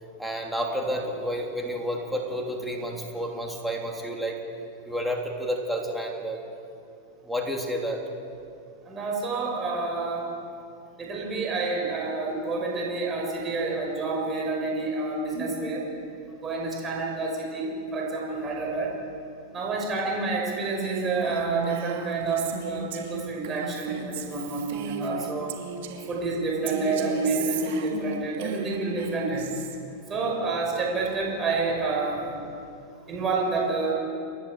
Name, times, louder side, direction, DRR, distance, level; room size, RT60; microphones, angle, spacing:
voice 1, 0.2-4.4 4.8-6.4 7.2-8.0, equal, ahead, -1 dB, 3.3 m, -30 dB
voice 2, 8.9-10.2 11.0-15.8 16.4-18.9 19.5-25.5 26.1-29.5 30.1-32.3 33.1-33.9, right 3 dB, 25° right, -1 dB, 6.3 m, -28 dB
Female speech woman speaking, 20.8-26.2 26.7-29.8, right 6 dB, 65° right, 2.8 m, -35 dB
30.0 x 11.0 x 8.3 m, 2.5 s
hypercardioid pair, 125°, 0 cm